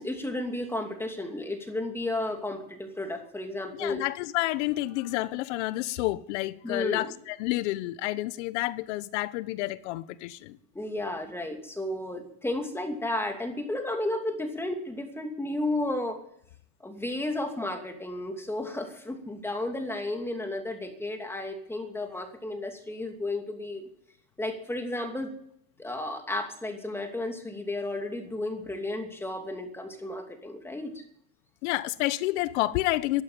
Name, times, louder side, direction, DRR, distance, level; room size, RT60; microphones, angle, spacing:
voice 1, 0.0-4.0 6.6-7.1 10.7-16.2 16.8-23.8 24.4-25.4 25.8-31.0, left 2 dB, 5° left, 2.7 m, -33 dB
voice 2, 3.7-10.6 31.6-33.2, left 18 dB, 75° left, 1.0 m, -29 dB
12.0 x 11.5 x 8.7 m
supercardioid pair, 130°, 35 cm